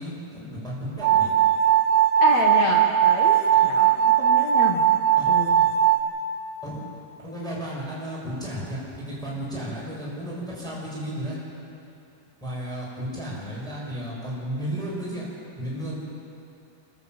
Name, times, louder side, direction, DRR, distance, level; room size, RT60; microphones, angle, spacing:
voice 1, 0.0-1.3 5.2-5.3 6.6-6.8 7.2-11.4 12.4-15.3 15.5-16.0, equal, ahead, -7 dB, 6.7 m, -33 dB
sound 1, 1.0-6.0, right 10 dB, 85° right, 3.3 m, -19 dB
voice 2, 2.2-5.0 5.3-5.6, left 3 dB, 60° left, 0 dB, 2.1 m, -27 dB
26.5 x 13.5 x 7.9 m, 2.7 s
omnidirectional pair, 4.5 m